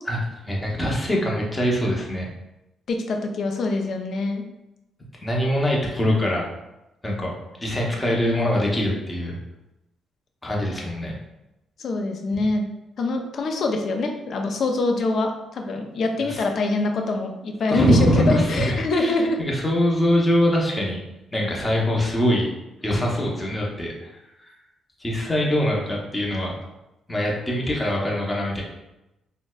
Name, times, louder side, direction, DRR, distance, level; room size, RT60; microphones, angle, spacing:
voice 1, 0.1-2.3 5.2-6.4 7.0-7.3 7.6-9.4 10.4-11.2 16.3-16.4 17.7-21.0 21.3-22.5 22.8-23.9 25.0-26.6 27.1-28.6, equal, 15° left, -2 dB, 0.8 m, -23 dB
voice 2, 2.9-4.4 11.8-12.6 13.0-19.4, left 2 dB, 60° left, 3 dB, 0.5 m, -24 dB
4.0 x 2.1 x 2.3 m, 0.94 s
cardioid pair, 90°, 0 cm